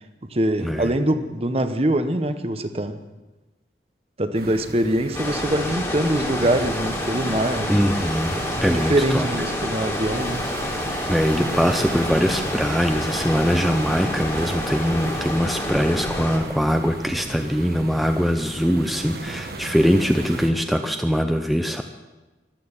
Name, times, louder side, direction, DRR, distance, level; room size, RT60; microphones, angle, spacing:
voice 1, 0.3-3.0 4.2-7.9 8.6-10.4, right 1 dB, 35° right, 9 dB, 0.9 m, -23 dB
sound 1, 4.3-20.5, right 2 dB, 55° right, 1.3 m, -35 dB
sound 2, 5.1-16.4, left 1 dB, 15° left, 2.2 m, -28 dB
voice 2, 7.7-9.2 11.1-21.8, equal, ahead, 6 dB, 0.5 m, -22 dB
14.5 x 12.0 x 7.2 m, 1.1 s
head